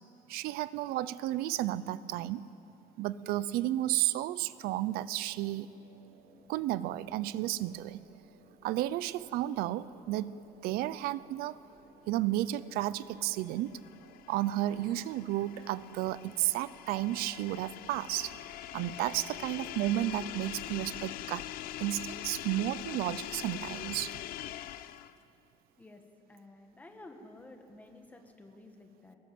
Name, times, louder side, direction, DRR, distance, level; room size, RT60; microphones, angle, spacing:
voice 1, 0.3-2.5 3.0-5.7 6.5-8.0 8.6-11.6 12.1-13.8 14.3-18.4 18.7-21.4 21.8-24.2, right 14 dB, 80° right, 17 dB, 0.6 m, -32 dB
sound 1, 2.1-17.5, right 3 dB, 65° right, 5.2 m, -62 dB
sound 2, 13.3-25.2, left 13 dB, 70° left, 0.7 m, -43 dB
voice 2, 26.3-29.2, left 2 dB, 10° left, 4 dB, 1.8 m, -52 dB
23.0 x 20.0 x 7.8 m, 2.8 s
cardioid pair, 170°, 16 cm